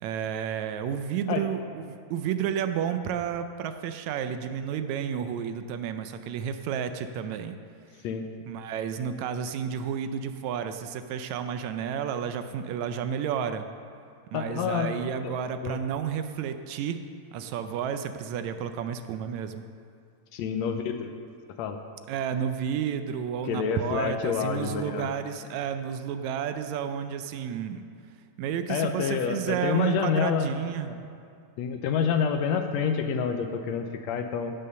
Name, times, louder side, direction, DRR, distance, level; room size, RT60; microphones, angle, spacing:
voice 1, 0.0-7.6 8.5-13.7 14.3-17.0 17.3-19.6 22.1-27.8 28.4-30.9, right 8 dB, 80° right, 9 dB, 1.8 m, -31 dB
voice 2, 14.3-15.0 15.2-15.3 15.6-15.8 20.3-21.1 21.6-21.8 23.5-25.1 28.7-30.5 30.9-31.0 31.6-34.5, left 7 dB, 80° left, 6 dB, 1.7 m, -28 dB
16.5 x 5.6 x 6.7 m, 2.4 s
omnidirectional pair, 3.4 m